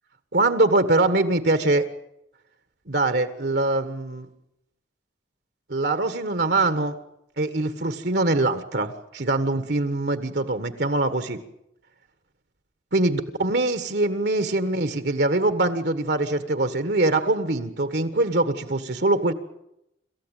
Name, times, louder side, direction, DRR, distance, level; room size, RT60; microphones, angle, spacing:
voice 1, 0.3-1.8 2.9-4.3 5.7-6.9 7.4-11.4 12.9-19.3, right 2 dB, 60° right, 10 dB, 1.4 m, -23 dB
27.0 x 14.5 x 9.0 m, 0.82 s
head